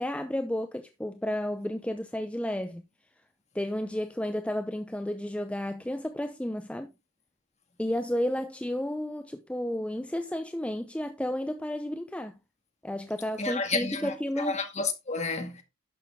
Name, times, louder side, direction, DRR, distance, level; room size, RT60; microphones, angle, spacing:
voice 1, 0.0-2.8 3.5-6.9 7.8-12.3 12.8-14.6, left 1 dB, 5° left, 0.6 m, -32 dB
voice 2, 13.4-15.6, left 4 dB, 35° left, 1.9 m, -31 dB
11.5 x 6.6 x 3.6 m
head